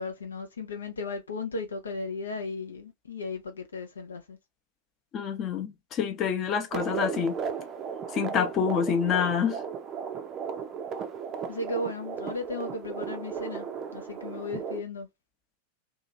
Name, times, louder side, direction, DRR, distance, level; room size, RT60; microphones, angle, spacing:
voice 1, 0.0-4.4 11.5-13.7 13.9-15.1, left 3 dB, 70° left, 0.5 m, -35 dB
voice 2, 5.1-7.4 8.1-9.6, left 7 dB, 30° left, 0.7 m, -27 dB
sound 1, 6.7-14.8, right 6 dB, 30° right, 0.5 m, -35 dB
2.8 x 2.3 x 2.6 m
figure-of-eight pair, 90°, 0 cm